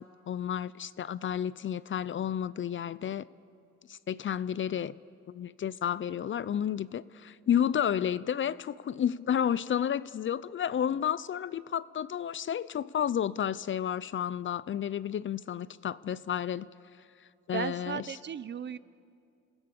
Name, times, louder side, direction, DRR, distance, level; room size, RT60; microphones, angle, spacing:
voice 1, 0.0-3.3 3.9-5.0 5.3-16.7 17.5-18.2, left 9 dB, 40° left, 19 dB, 0.5 m, -31 dB
voice 2, 17.5-18.8, right 8 dB, 35° right, 18 dB, 0.6 m, -35 dB
29.0 x 16.0 x 6.8 m, 2.4 s
cardioid pair, 90°, 30 cm